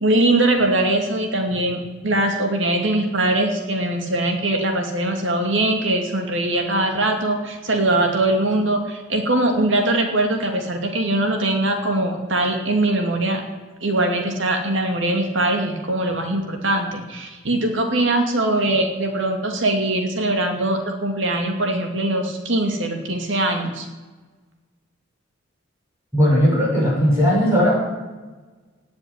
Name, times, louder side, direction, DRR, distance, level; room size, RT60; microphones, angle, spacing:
voice 1, 0.0-13.4 13.8-23.9, right 1 dB, 65° right, 3 dB, 2.5 m, -21 dB
voice 2, 26.1-27.7, equal, 15° right, -6 dB, 6.5 m, -17 dB
18.5 x 7.0 x 9.5 m, 1.3 s
head